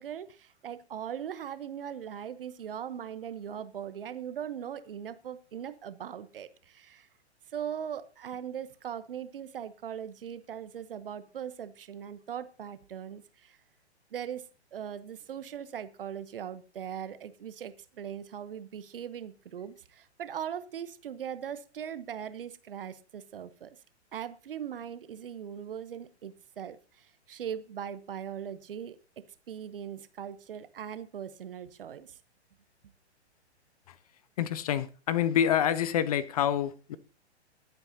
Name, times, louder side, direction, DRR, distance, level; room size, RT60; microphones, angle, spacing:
voice 1, 0.0-7.1 7.5-13.6 14.1-23.8 24.1-29.0 29.5-32.2, right 9 dB, 55° right, 1.0 m, -40 dB
voice 2, 34.4-37.0, left 9 dB, 35° left, 0.6 m, -27 dB
21.5 x 8.1 x 2.7 m
figure-of-eight pair, 115°, 34 cm